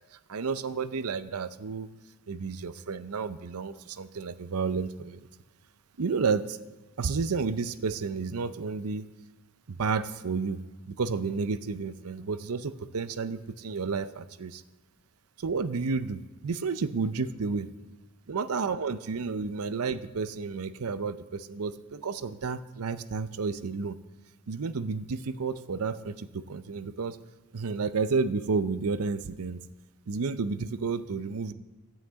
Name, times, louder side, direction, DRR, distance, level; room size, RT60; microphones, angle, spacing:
voice 1, 0.0-1.9 2.3-5.2 6.0-6.6 7.0-9.1 9.7-10.6 10.9-14.6 15.4-17.7 18.3-24.0 24.5-27.2 27.5-29.6 30.1-31.5, right 4 dB, 75° right, 13 dB, 0.6 m, -31 dB
13.0 x 5.8 x 8.3 m, 1.2 s
head